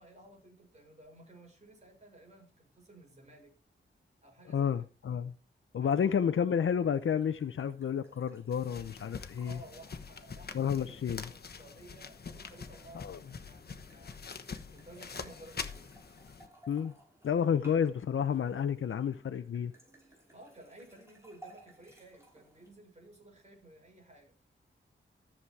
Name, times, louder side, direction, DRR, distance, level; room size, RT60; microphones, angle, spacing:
voice 1, 0.0-3.5 4.2-4.7 5.8-6.1 9.4-14.2 14.7-15.9 20.1-24.3, right 1 dB, 35° right, 6.2 m, -55 dB
voice 2, 4.5-5.3 5.7-9.6 10.5-11.3 12.9-13.2 16.7-16.9 17.2-19.7, left 8 dB, 85° left, 0.7 m, -30 dB
sound 1, 6.2-22.7, right 2 dB, 15° right, 5.3 m, -60 dB
sound 2, 8.5-16.5, left 5 dB, 50° left, 1.2 m, -45 dB
14.0 x 7.4 x 4.7 m
wide cardioid pair, 135°, 20 cm